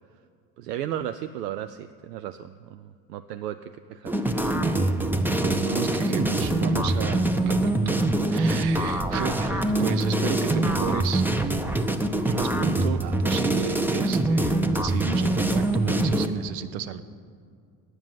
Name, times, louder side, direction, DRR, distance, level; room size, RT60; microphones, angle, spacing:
voice 1, 0.6-4.2 9.1-9.4 13.0-13.1, right 11 dB, 80° right, 10 dB, 0.6 m, -35 dB
sound 1, 4.1-16.3, right 1 dB, 5° right, 0.7 m, -24 dB
voice 2, 5.4-11.6 12.3-17.0, right 7 dB, 65° right, 13 dB, 0.9 m, -32 dB
9.7 x 7.3 x 9.0 m, 2.2 s
hypercardioid pair, 70°, 47 cm